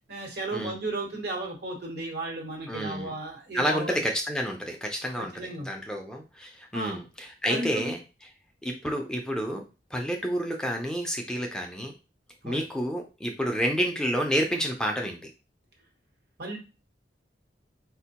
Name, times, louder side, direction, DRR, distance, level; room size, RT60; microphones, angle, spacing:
voice 1, 0.1-4.0 5.2-5.7 6.7-7.0 7.5-7.9 12.4-12.6 16.4-16.6, right 2 dB, 65° right, 0 dB, 1.1 m, -34 dB
voice 2, 2.7-3.1 3.5-5.3 5.6-8.0 8.6-9.6 9.9-11.9 12.4-15.3, equal, 5° left, 2 dB, 0.4 m, -29 dB
4.2 x 2.2 x 2.8 m, 0.30 s
head